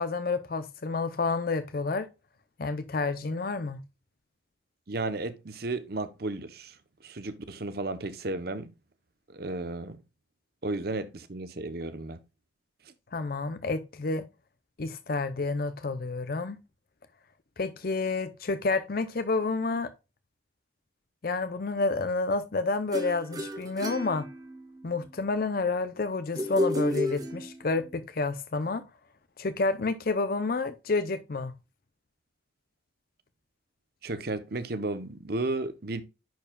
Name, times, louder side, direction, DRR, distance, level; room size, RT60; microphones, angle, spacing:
voice 1, 0.0-2.1 2.6-3.8 13.1-14.2 14.8-16.6 17.6-19.9 21.2-24.3 24.8-28.8 29.4-31.5, left 3 dB, 50° left, 0.6 m, -29 dB
voice 2, 4.9-6.8 7.0-8.7 9.3-10.0 10.6-12.2 34.0-36.0, right 2 dB, 55° right, 0.8 m, -33 dB
sound 1, 22.9-24.9 26.3-27.9, left 1 dB, 20° right, 1.1 m, -32 dB
10.5 x 4.7 x 2.3 m
head